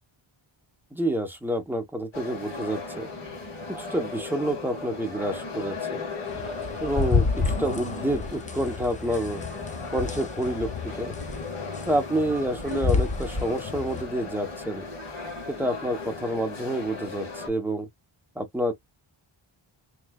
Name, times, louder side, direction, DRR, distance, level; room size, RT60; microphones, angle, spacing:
voice 1, 0.9-3.1 3.8-6.0 6.8-9.4 9.9-11.1 11.9-14.8 15.5-17.9 18.4-18.7, right 1 dB, 5° right, 0.8 m, -28 dB
sound 1, 2.1-17.5, left 3 dB, 70° left, 2.3 m, -37 dB
sound 2, 6.3-14.0, left 4 dB, 15° left, 0.4 m, -30 dB
3.3 x 3.0 x 2.3 m
wide cardioid pair, 130°, 50 cm